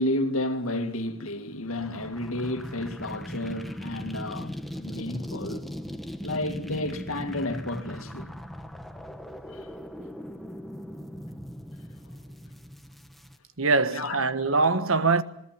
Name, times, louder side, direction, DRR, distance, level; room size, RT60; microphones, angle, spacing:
voice 1, 0.0-5.7 6.2-8.3 9.5-9.7 13.9-14.2, left 1 dB, 90° left, 2.1 m, -31 dB
sound 1, 1.7-13.4, equal, ahead, 1.3 m, -39 dB
voice 2, 13.6-15.2, right 3 dB, 75° right, 1.4 m, -23 dB
28.0 x 19.5 x 7.4 m
head